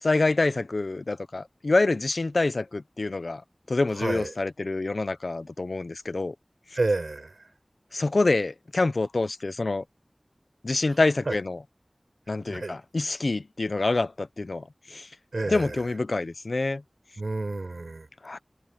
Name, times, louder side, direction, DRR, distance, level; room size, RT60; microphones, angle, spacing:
voice 1, 0.0-3.4 3.7-6.3 7.9-9.8 10.6-11.6 12.3-15.1 15.5-16.8 18.2-18.4, left 3 dB, 90° left, 0.9 m, -26 dB
voice 2, 3.9-4.3 6.7-7.4 11.3-11.4 12.5-12.7 15.3-15.8 17.2-18.1, right 2 dB, 90° right, 5.9 m, -29 dB
wide cardioid pair, 55°, 0 cm